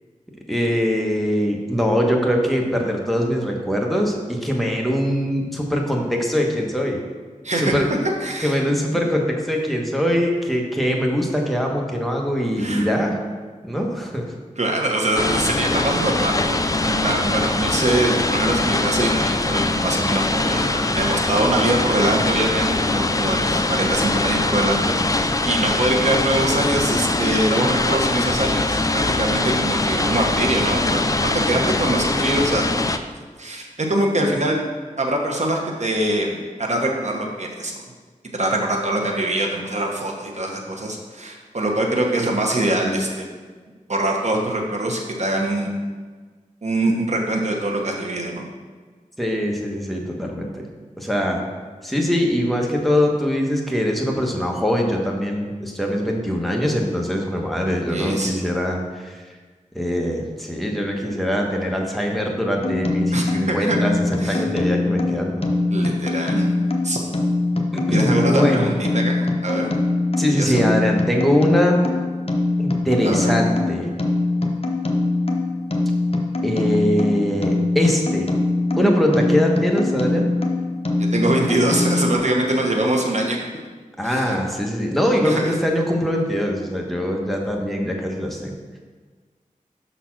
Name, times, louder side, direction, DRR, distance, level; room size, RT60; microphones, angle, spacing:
voice 1, 0.5-7.0 7.6-7.8 8.4-13.2 13.6-14.2 49.2-50.6 51.0-51.5 51.8-59.2 59.7-65.5 67.7-68.7 70.2-71.8 72.6-73.9 76.4-78.3 78.8-80.3 84.0-88.8, equal, ahead, 0 dB, 1.2 m, -22 dB
voice 2, 8.0-8.6 12.6-12.9 14.6-32.7 33.4-34.6 35.0-37.8 38.3-43.2 43.9-45.7 46.6-48.5 57.9-58.3 63.1-63.8 64.2-64.4 65.7-66.5 66.8-67.0 67.9-69.7 70.3-70.6 73.0-73.4 81.0-83.4 84.0-84.4 85.2-85.5, right 1 dB, 55° right, 0 dB, 1.1 m, -23 dB
sound 1, 15.2-33.0, left 2 dB, 25° left, 0.4 m, -22 dB
sound 2, 62.6-82.2, left 2 dB, 45° left, 0.8 m, -23 dB
5.9 x 4.2 x 5.9 m, 1.4 s
wide cardioid pair, 55°, 14 cm